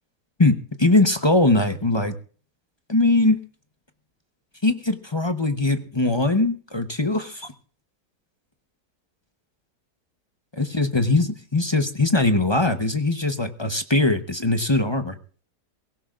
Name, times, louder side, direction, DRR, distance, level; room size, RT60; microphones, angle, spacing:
voice 1, 0.4-2.1 2.9-3.4 4.6-7.5 10.5-15.2, left 2 dB, 25° left, 7 dB, 0.7 m, -21 dB
23.5 x 16.0 x 2.5 m, 0.41 s
omnidirectional pair, 1.8 m